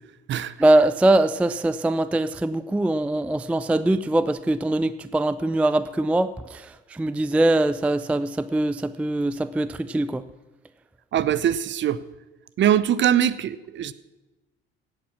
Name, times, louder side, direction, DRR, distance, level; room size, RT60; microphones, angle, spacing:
voice 1, 0.6-10.2, right 1 dB, 5° right, 14 dB, 0.4 m, -22 dB
voice 2, 11.1-12.0 12.6-13.9, right 10 dB, 35° right, 17 dB, 0.7 m, -22 dB
16.5 x 8.5 x 6.1 m, 1.1 s
figure-of-eight pair, 55°, 32 cm